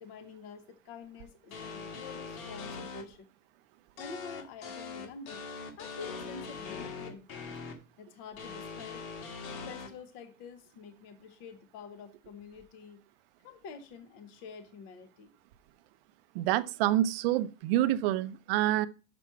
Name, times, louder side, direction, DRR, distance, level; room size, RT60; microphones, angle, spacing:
voice 1, 0.0-3.3 4.0-7.5 8.0-9.0 9.6-13.0 13.4-15.3, left 5 dB, 35° left, 0.7 m, -48 dB
sound 1, 1.5-3.0 4.0-7.7 8.4-9.9, left 5 dB, 90° left, 2.2 m, -41 dB
voice 2, 16.3-18.9, right 13 dB, 45° right, 0.5 m, -27 dB
6.1 x 5.9 x 5.5 m
supercardioid pair, 170°, 40 cm